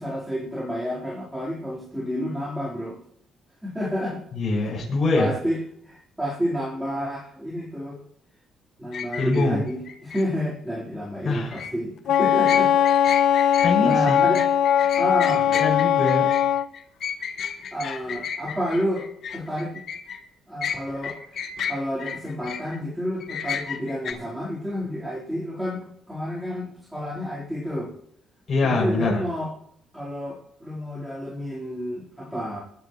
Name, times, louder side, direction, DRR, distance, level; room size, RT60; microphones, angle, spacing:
voice 1, 0.0-3.0 3.6-4.2 4.6-4.7 5.1-8.0 8.8-13.0 13.3-14.5 15.0-15.5 17.7-19.8 20.5-27.9 28.6-29.5 29.9-32.6, equal, 5° right, -6 dB, 3.9 m, -30 dB
voice 2, 4.3-5.3 9.2-9.6 11.2-11.6 13.6-14.3 15.6-16.3 28.5-29.2, left 3 dB, 45° left, -4 dB, 6.6 m, -23 dB
sound 1, 8.9-10.2 11.3-11.7 12.1-20.2 20.6-22.8 23.2-24.1, left 7 dB, 60° left, 1.7 m, -32 dB
Wind instrument woodwind instrument, 12.1-16.7, left 10 dB, 80° left, 0.5 m, -20 dB
21.0 x 11.0 x 3.1 m, 0.69 s
cardioid pair, 90°, 0 cm